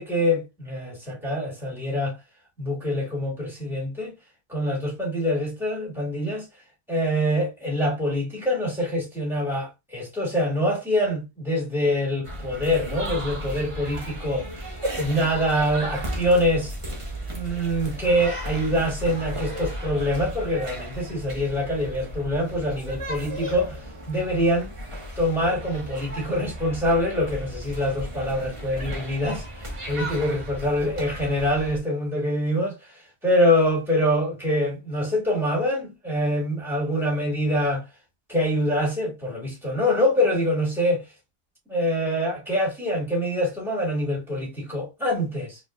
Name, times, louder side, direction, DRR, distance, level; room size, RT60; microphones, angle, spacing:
voice 1, 0.0-2.2 2.6-4.1 4.5-6.5 6.9-14.5 15.0-16.7 17.3-23.8 24.1-24.7 25.2-32.8 33.2-37.8 38.3-41.0 41.7-45.6, equal, ahead, 2.4 m, -25 dB
sound 1, 12.2-31.8, equal, 25° right, 1.1 m, -35 dB
4.7 x 3.3 x 2.5 m
omnidirectional pair, 1.4 m